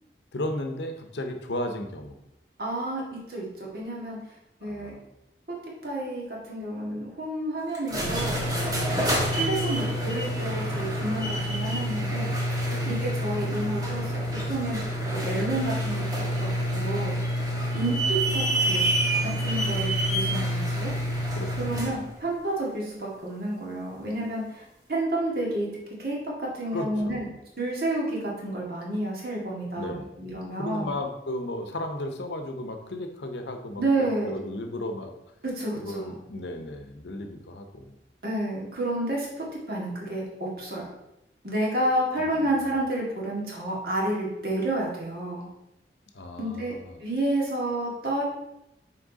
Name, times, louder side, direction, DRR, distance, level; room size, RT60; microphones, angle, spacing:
voice 1, 0.3-2.2 4.6-5.1 12.7-12.9 17.7-17.9 21.3-21.8 26.7-27.3 29.7-30.1 30.6-33.8 34.2-35.1 35.8-37.9 42.2-42.7 46.1-47.0, left 1 dB, 80° left, 6 dB, 0.8 m, -35 dB
voice 2, 2.6-3.0 3.3-4.2 4.6-4.9 5.5-5.6 5.8-8.4 9.0-12.3 12.8-14.2 14.5-17.2 17.7-18.9 19.4-20.9 21.6-24.6 24.9-25.7 26.0-27.3 27.6-30.9 33.8-34.4 35.4-36.1 38.2-40.8 41.4-45.5 46.4-46.7 47.0-48.2, right 1 dB, 55° right, -4 dB, 1.9 m, -30 dB
sound 1, 7.7-22.0, equal, 20° right, 1.2 m, -27 dB
6.2 x 4.5 x 4.0 m, 0.88 s
head